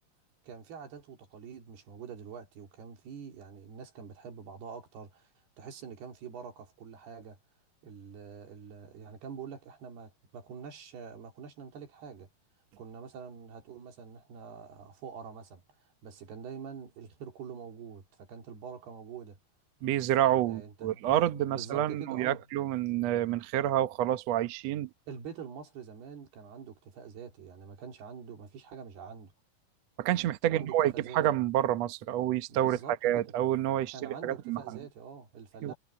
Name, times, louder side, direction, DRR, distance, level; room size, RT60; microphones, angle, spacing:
voice 1, 0.4-5.3 5.6-7.4 7.8-12.3 12.8-15.6 16.0-19.4 20.5-21.0 21.5-22.4 25.1-29.3 30.4-31.2 32.5-33.3 33.9-35.8, right 6 dB, 90° right, 5.2 m, -45 dB
voice 2, 19.8-24.9 30.0-34.6 35.6-35.7, right 12 dB, 70° right, 1.6 m, -28 dB
Bowed string instrument, 21.1-23.7, left 1 dB, 20° left, 6.9 m, -55 dB
omnidirectional pair, 4.5 m